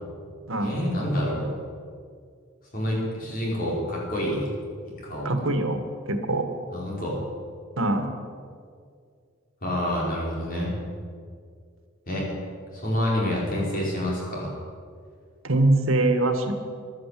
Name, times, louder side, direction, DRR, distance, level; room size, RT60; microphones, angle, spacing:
voice 1, 0.6-1.5 2.7-4.5 5.0-5.3 6.7-7.2 9.6-10.7 12.1-12.3 12.7-14.5, equal, 45° left, -4 dB, 5.2 m, -27 dB
voice 2, 5.2-5.8 6.1-6.5 7.8-8.1 15.4-16.5, right 2 dB, 75° right, 6 dB, 1.7 m, -23 dB
15.5 x 11.5 x 7.6 m, 2.2 s
head